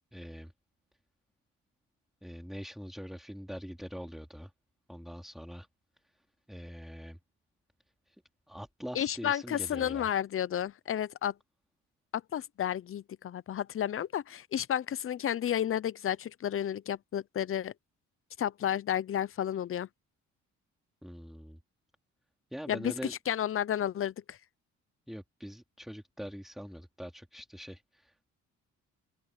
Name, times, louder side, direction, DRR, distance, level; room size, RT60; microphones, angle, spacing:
voice 1, 0.1-0.5 2.2-4.5 4.9-5.7 6.1-6.2 6.5-7.2 8.1-8.2 8.5-10.1 21.0-21.6 22.5-23.1 25.1-28.2, equal, ahead, 3.4 m, -43 dB
voice 2, 8.9-11.3 12.1-17.7 18.4-19.9 22.7-22.9 23.3-24.4, left 10 dB, 45° left, 0.7 m, -32 dB
open air
cardioid pair, 90°, 30 cm